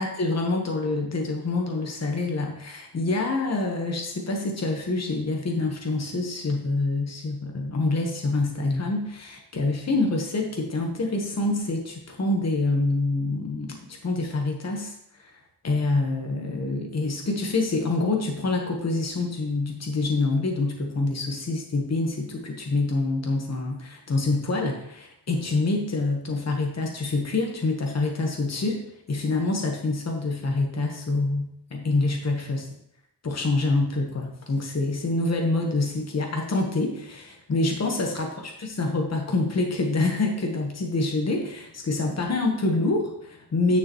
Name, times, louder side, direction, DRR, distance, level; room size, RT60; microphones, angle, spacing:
voice 1, 0.0-15.3 15.6-32.7 33.2-43.8, left 2 dB, 40° left, 2 dB, 1.2 m, -26 dB
9.9 x 6.4 x 3.0 m, 0.77 s
wide cardioid pair, 140°, 39 cm